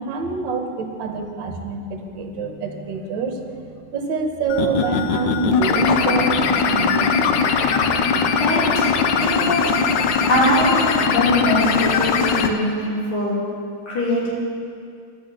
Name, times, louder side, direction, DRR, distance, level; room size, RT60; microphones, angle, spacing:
voice 1, 0.0-7.2, right 4 dB, 65° right, 4 dB, 1.6 m, -26 dB
sound 1, 4.5-12.5, left 5 dB, 70° left, 1.2 m, -20 dB
voice 2, 8.4-9.7 10.3-13.4 13.9-14.3, left 1 dB, 85° left, -7 dB, 3.8 m, -22 dB
11.5 x 6.2 x 8.1 m, 2.3 s
omnidirectional pair, 2.3 m